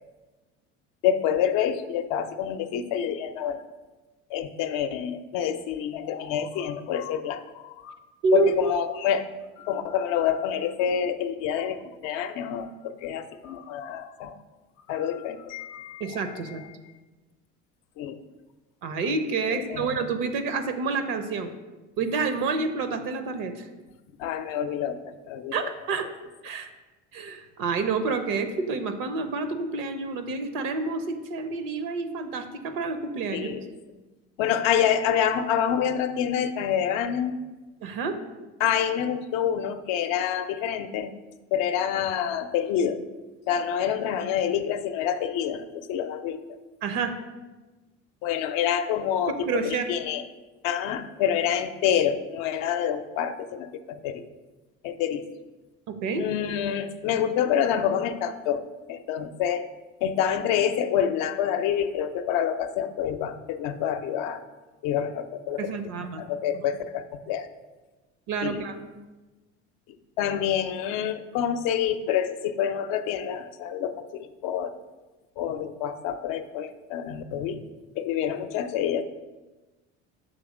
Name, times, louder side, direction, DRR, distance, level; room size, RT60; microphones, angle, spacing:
voice 1, 1.0-3.6 4.3-8.0 8.3-9.3 9.6-14.4 14.9-16.7 18.0-18.2 19.5-20.1 24.2-25.7 33.3-33.7 34.4-37.4 38.6-41.1 41.5-43.0 43.5-46.4 48.2-50.2 50.6-54.2 54.8-55.2 56.2-59.7 60.0-64.4 64.8-65.7 66.2-67.5 68.4-68.6 70.2-74.8 75.4-77.6 78.0-79.0, left 9 dB, 65° left, 8 dB, 0.6 m, -27 dB
voice 2, 8.2-8.7 16.0-16.6 18.8-21.5 22.0-23.7 25.5-26.1 26.4-26.7 27.1-33.5 37.8-38.2 46.8-47.1 49.4-49.9 55.9-56.3 65.6-66.2 66.5-66.6 68.3-68.9, right 4 dB, 65° right, 9 dB, 0.8 m, -28 dB
6.4 x 3.5 x 5.0 m, 1.2 s
hypercardioid pair, 75°, 36 cm